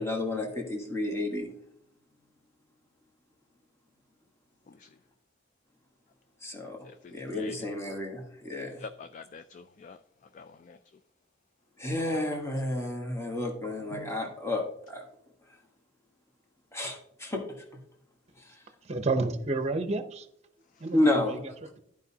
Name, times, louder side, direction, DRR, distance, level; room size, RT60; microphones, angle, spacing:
voice 1, 0.0-1.5 6.4-8.8 11.8-15.0 16.7-17.4 20.9-21.4, left 1 dB, 15° left, 1.4 m, -31 dB
voice 2, 6.8-7.7 8.8-10.0 10.3-10.8 20.7-20.9, left 5 dB, 40° left, 0.3 m, -46 dB
voice 3, 18.8-20.3 20.8-21.5, right 3 dB, 35° right, 0.7 m, -30 dB
13.0 x 4.8 x 2.8 m
head